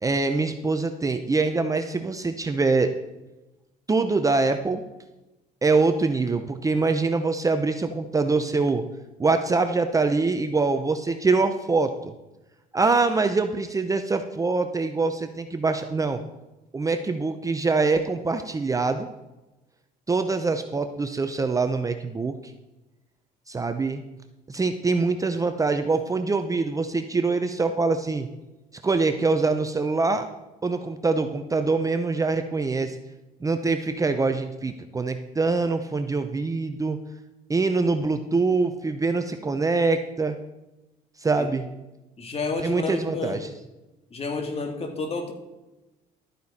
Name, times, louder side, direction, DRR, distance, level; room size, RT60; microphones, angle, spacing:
voice 1, 0.0-2.9 3.9-4.8 5.6-8.8 9.2-12.1 12.7-16.2 16.7-19.1 20.1-22.3 23.5-24.0 24.5-28.3 28.8-30.3 30.6-33.0 33.4-37.0 37.5-40.4 41.2-41.6 42.6-43.5, right 3 dB, 20° right, 7 dB, 0.7 m, -24 dB
voice 2, 42.2-43.4 44.1-45.3, left 3 dB, 35° left, 5 dB, 2.1 m, -30 dB
12.5 x 9.3 x 4.2 m, 1.0 s
cardioid pair, 110°, 17 cm